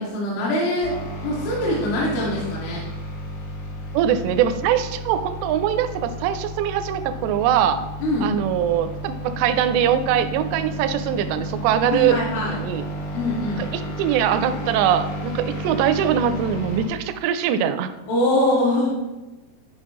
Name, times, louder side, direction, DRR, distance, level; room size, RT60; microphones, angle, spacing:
voice 1, 0.0-2.8 8.0-8.3 11.9-12.6 13.1-13.6 18.1-18.9, left 1 dB, 75° left, -4 dB, 3.2 m, -23 dB
sound 1, 0.8-16.9, equal, 90° left, 3.7 m, -32 dB
voice 2, 3.9-7.8 8.2-12.2 12.5-12.8 13.6-17.9, right 9 dB, 85° right, 10 dB, 2.6 m, -22 dB
11.5 x 5.1 x 3.0 m, 1.1 s
omnidirectional pair, 5.1 m